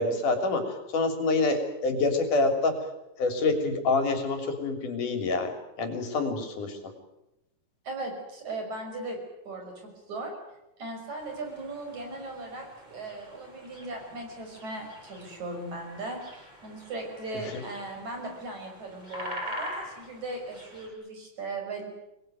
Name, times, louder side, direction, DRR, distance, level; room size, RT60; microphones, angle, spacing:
voice 1, 0.0-2.7 3.2-5.5 5.8-6.8 17.5-17.6, left 3 dB, 90° left, 6 dB, 4.8 m, -26 dB
voice 2, 7.9-9.2 9.5-10.3 10.8-21.9, right 2 dB, 65° right, 3 dB, 7.2 m, -38 dB
sound 1, 11.2-20.9, equal, 15° right, 6.3 m, -44 dB
25.5 x 20.5 x 9.3 m, 0.92 s
omnidirectional pair, 3.5 m